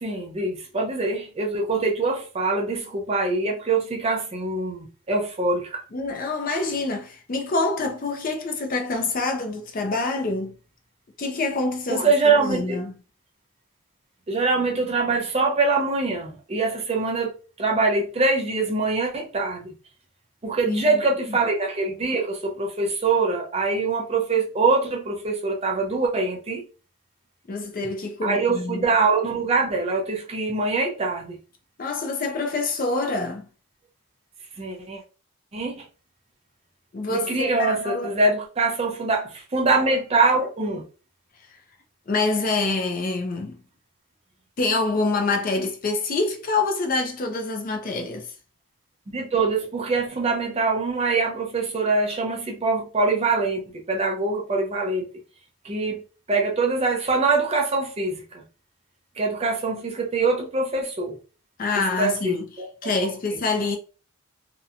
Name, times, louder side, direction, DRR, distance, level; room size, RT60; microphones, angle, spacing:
voice 1, 0.0-5.8 11.9-12.8 14.3-19.7 20.4-26.6 28.2-31.4 34.6-35.0 35.5-35.8 37.1-40.8 49.1-55.1 55.6-56.0 56.3-58.4 59.2-61.2 62.0-63.1, right 3 dB, 25° right, 0.4 m, -24 dB
voice 2, 5.9-10.5 11.2-12.9 20.7-21.0 21.3-21.4 27.5-28.9 31.8-33.5 36.9-38.2 42.1-43.6 44.6-48.3 61.6-62.5 62.8-63.8, left 3 dB, 40° left, 0.4 m, -26 dB
2.8 x 2.1 x 2.4 m
head